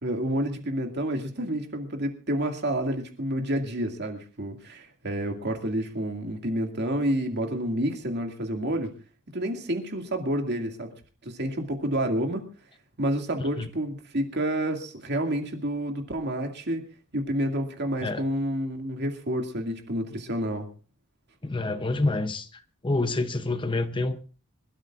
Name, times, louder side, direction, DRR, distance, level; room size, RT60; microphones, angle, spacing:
voice 1, 0.0-8.9 9.3-10.9 11.2-12.4 13.0-16.8 17.1-20.7, right 1 dB, 50° right, 2.3 m, -29 dB
voice 2, 21.4-24.2, left 2 dB, 20° left, 0.7 m, -28 dB
26.0 x 13.0 x 2.5 m
head